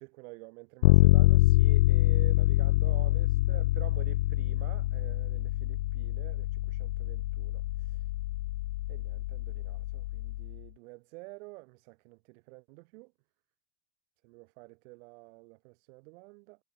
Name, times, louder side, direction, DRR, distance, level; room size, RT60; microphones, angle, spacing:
voice 1, 0.0-8.1 8.9-13.1 14.2-16.6, right 28 dB, 55° right, 3.9 m, -49 dB
Bass guitar, 0.8-10.6, left 17 dB, 85° left, 0.7 m, -26 dB
supercardioid pair, 145°, 43 cm